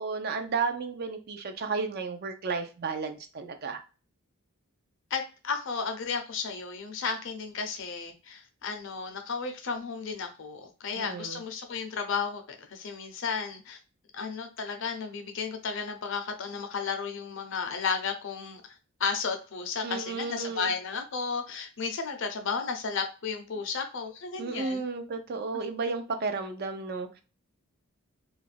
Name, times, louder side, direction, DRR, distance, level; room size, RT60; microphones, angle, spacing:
voice 1, 0.0-3.8 11.0-11.4 19.8-20.7 24.4-27.2, right 4 dB, 45° right, 7 dB, 0.4 m, -33 dB
voice 2, 5.1-13.8 14.1-18.6 19.0-24.8, left 5 dB, 60° left, 6 dB, 0.6 m, -33 dB
2.4 x 2.2 x 3.2 m, 0.33 s
head